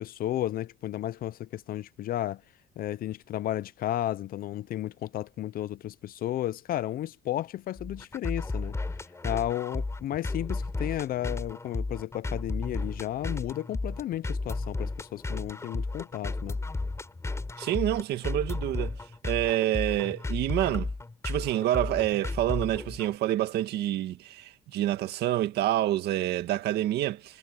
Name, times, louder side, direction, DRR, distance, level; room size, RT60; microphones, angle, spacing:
voice 1, 0.0-2.4 2.8-8.7 9.2-16.6, left 13 dB, 60° left, 0.6 m, -33 dB
sound 1, 7.8-23.2, left 3 dB, 15° left, 5.0 m, -34 dB
voice 2, 17.6-19.0 19.2-20.9 21.2-27.4, right 13 dB, 75° right, 1.9 m, -28 dB
cardioid pair, 110°, 17 cm